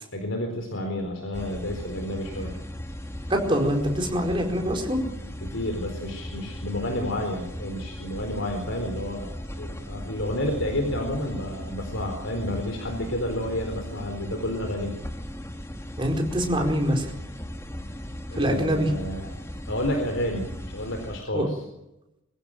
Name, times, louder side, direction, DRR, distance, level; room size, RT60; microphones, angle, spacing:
voice 1, 0.1-2.6 5.4-9.3 9.6-14.9 18.3-19.4 19.7-21.6, left 1 dB, 65° left, 3 dB, 4.2 m, -30 dB
sound 1, 1.3-21.2, equal, 15° left, 1.9 m, -37 dB
voice 2, 3.3-5.0 16.0-17.1 18.3-18.9 21.3-21.5, equal, 25° right, 2 dB, 4.6 m, -24 dB
24.5 x 15.5 x 9.1 m, 0.91 s
head